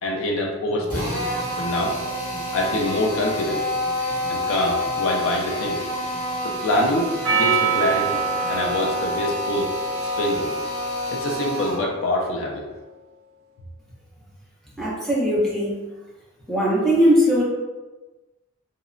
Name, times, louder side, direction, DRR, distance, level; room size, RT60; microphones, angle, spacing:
voice 1, 0.0-1.2 1.6-2.0 2.5-3.7 4.3-5.9 6.4-8.2 8.5-9.7 10.0-10.5 11.1-12.7, left 1 dB, 70° left, -1 dB, 0.4 m, -25 dB
sound 1, 0.7-10.9, right 2 dB, 50° left, 1.0 m, -41 dB
Drill, 0.9-11.9, left 1 dB, 35° left, 1.3 m, -28 dB
Percussion, 7.2-11.8, right 6 dB, 75° right, 0.4 m, -27 dB
voice 2, 14.8-15.7 16.5-17.4, equal, ahead, -6 dB, 0.5 m, -19 dB
2.8 x 2.0 x 2.5 m, 1.2 s
head